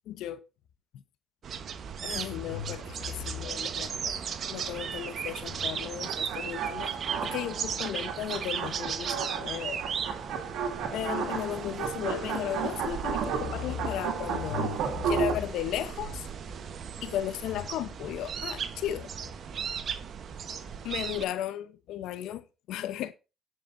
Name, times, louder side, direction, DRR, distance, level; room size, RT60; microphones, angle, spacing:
voice 1, 0.1-0.4 2.0-4.2 4.5-7.0 7.2-9.8 10.9-16.3 17.0-19.1 20.8-23.1, left 11 dB, 75° left, 0.8 m, -35 dB
sound 1, 1.4-21.2, right 7 dB, 60° right, 1.1 m, -37 dB
sound 2, 6.0-15.3, right 6 dB, 75° right, 2.2 m, -33 dB
16.5 x 5.8 x 2.6 m
supercardioid pair, 60°, 0 cm